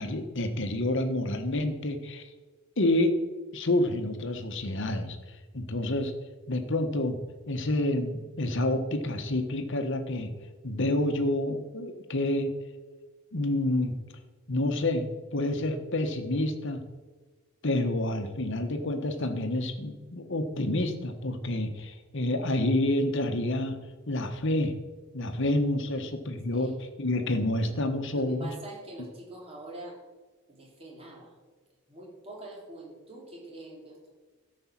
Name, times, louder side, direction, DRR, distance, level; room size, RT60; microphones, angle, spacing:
voice 1, 0.0-2.3 2.8-3.2 3.5-5.2 5.5-6.1 6.5-7.2 7.5-10.3 10.6-12.5 13.3-14.0 14.5-16.8 17.6-23.8 24.1-24.7 25.1-28.5, left 1 dB, 55° left, 7 dB, 1.2 m, -28 dB
voice 2, 28.1-30.0 30.5-31.3 31.9-34.1, right 1 dB, 25° right, -3 dB, 3.2 m, -44 dB
13.0 x 5.5 x 7.3 m, 1.4 s
head